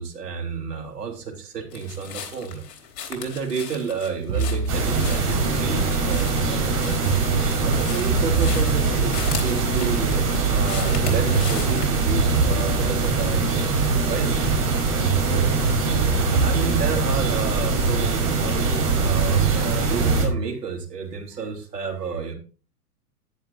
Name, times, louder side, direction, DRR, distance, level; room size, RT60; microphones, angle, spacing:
voice 1, 0.0-2.6 3.1-7.1 7.6-9.1 9.4-14.5 15.1-15.6 16.1-22.3, right 5 dB, 85° right, 3 dB, 3.2 m, -31 dB
sound 1, 1.7-11.9, left 8 dB, 45° left, 3.5 m, -38 dB
sound 2, 4.3-6.2 7.0-10.1 11.0-14.1 15.0-18.1 19.0-20.4, right 4 dB, 60° right, 2.4 m, -27 dB
sound 3, 4.7-20.3, right 3 dB, 35° right, 5.1 m, -23 dB
11.0 x 10.0 x 2.7 m, 0.35 s
hypercardioid pair, 125°, 47 cm